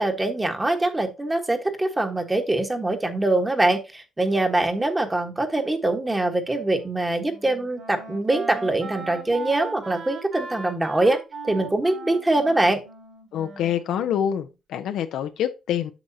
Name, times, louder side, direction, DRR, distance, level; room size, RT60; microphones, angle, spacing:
voice 1, 0.0-11.2 11.4-12.8, right 2 dB, 15° right, 1.3 m, -23 dB
Wind instrument woodwind instrument, 6.7-14.5, right 4 dB, 60° right, 3.8 m, -39 dB
voice 2, 13.3-15.9, left 9 dB, 80° left, 0.7 m, -26 dB
8.0 x 6.3 x 2.8 m
cardioid pair, 90°, 0 cm